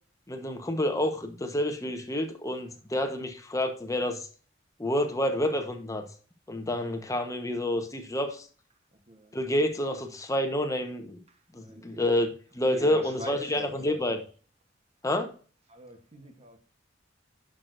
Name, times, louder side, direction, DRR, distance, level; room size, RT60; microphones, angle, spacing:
voice 1, 0.3-4.3 4.8-6.0 6.5-8.5 9.3-11.2 11.5-14.2 15.0-15.3, left 1 dB, 15° left, 1.1 m, -28 dB
voice 2, 11.3-12.1 12.6-14.2 15.7-16.6, equal, 35° right, 1.1 m, -43 dB
10.5 x 6.3 x 2.6 m
head